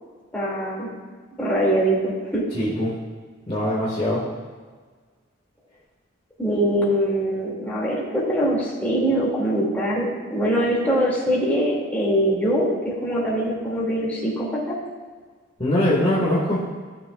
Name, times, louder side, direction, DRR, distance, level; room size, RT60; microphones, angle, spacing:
voice 1, 0.3-0.9 1.4-2.4 6.4-14.7, right 1 dB, 10° left, -6 dB, 2.3 m, -23 dB
voice 2, 2.5-2.9 3.5-4.2 15.6-16.6, left 1 dB, 25° left, -7 dB, 1.6 m, -22 dB
15.5 x 6.7 x 2.4 m, 1.5 s
head